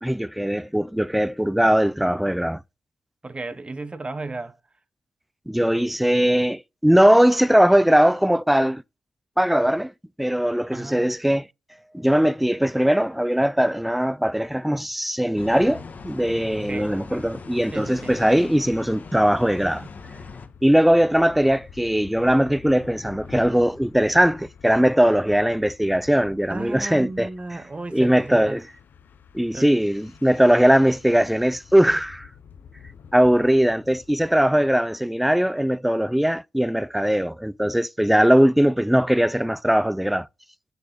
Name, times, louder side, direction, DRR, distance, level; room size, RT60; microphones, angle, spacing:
voice 1, 0.0-2.6 5.5-8.8 9.4-9.9 10.2-11.5 11.9-19.8 20.6-27.6 27.9-28.6 29.3-32.3 33.1-40.3, equal, 5° right, 0.4 m, -20 dB
voice 2, 3.2-4.6 10.7-11.1 16.7-16.9 17.7-18.1 19.8-19.9 26.5-28.6 29.5-29.7 34.3-34.6, right 3 dB, 30° right, 1.1 m, -34 dB
sound 1, 15.4-20.5, left 4 dB, 55° left, 1.4 m, -40 dB
sound 2, 17.6-34.8, left 7 dB, 70° left, 0.8 m, -49 dB
6.9 x 6.9 x 4.0 m
cardioid pair, 55°, 3 cm